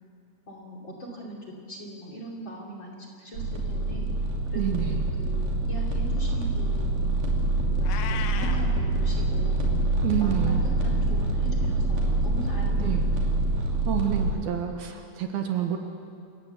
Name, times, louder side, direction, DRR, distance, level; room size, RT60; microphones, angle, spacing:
voice 1, 0.5-4.1 4.5-7.2 7.8-10.5 10.8-13.3, equal, 30° left, -1 dB, 2.9 m, -41 dB
sound 1, 3.3-14.3, right 2 dB, 55° right, 4.1 m, -25 dB
voice 2, 4.5-5.1 10.0-10.7 12.8-13.1 13.9-15.8, right 10 dB, 70° right, 4 dB, 3.0 m, -28 dB
Meow, 7.8-8.7, left 9 dB, 85° left, 3.4 m, -35 dB
28.0 x 16.0 x 8.0 m, 2.4 s
omnidirectional pair, 4.9 m